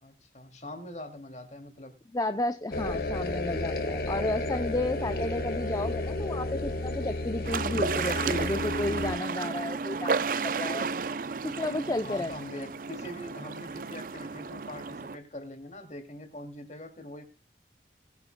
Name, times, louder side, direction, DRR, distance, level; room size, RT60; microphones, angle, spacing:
voice 1, 0.0-2.0 12.0-17.2, left 1 dB, 40° left, 6 dB, 2.5 m, -43 dB
voice 2, 2.1-10.9 11.4-12.3, left 2 dB, 20° left, 9 dB, 0.5 m, -32 dB
sound 1, 2.7-9.2, left 2 dB, 55° left, 1.7 m, -32 dB
sound 2, 7.4-15.2, right 4 dB, 50° right, 0.5 m, -32 dB
20.0 x 9.1 x 2.2 m, 0.28 s
head